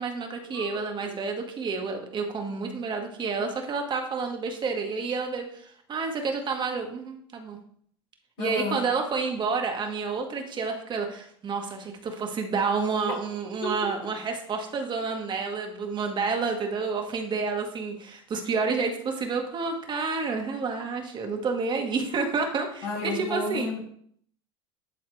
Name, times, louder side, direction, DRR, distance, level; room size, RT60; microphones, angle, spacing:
voice 1, 0.0-7.6 8.4-23.7, right 4 dB, 35° right, 3 dB, 1.4 m, -29 dB
voice 2, 0.5-1.2 8.4-8.8 13.6-13.7 22.8-23.8, left 3 dB, 70° left, -1 dB, 2.5 m, -32 dB
11.0 x 3.9 x 3.2 m, 0.63 s
hypercardioid pair, 85°, 13 cm